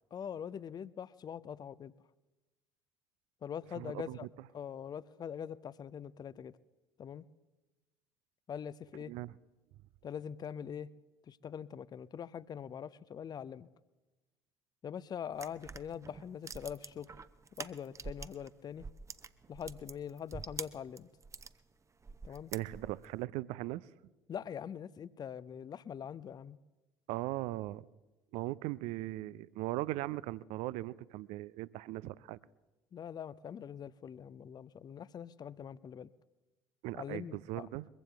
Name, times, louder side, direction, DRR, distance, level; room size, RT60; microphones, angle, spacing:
voice 1, 0.1-1.9 3.4-4.3 4.5-6.6 7.0-7.3 8.5-9.1 10.0-10.9 11.3-13.7 14.8-17.1 17.6-18.9 19.5-21.1 22.2-22.5 24.3-26.6 32.9-36.1 36.9-37.7, left 8 dB, 30° left, 20 dB, 0.5 m, -43 dB
voice 2, 3.8-4.2 9.1-9.3 22.5-23.9 27.1-27.9 28.3-32.4 36.8-37.9, right 17 dB, 55° right, 21 dB, 0.4 m, -39 dB
sound 1, 15.3-18.5 18.8-21.5 22.0-23.1, right 4 dB, 20° right, 0.8 m, -46 dB
23.0 x 15.0 x 3.5 m, 1.1 s
figure-of-eight pair, 60°, 13 cm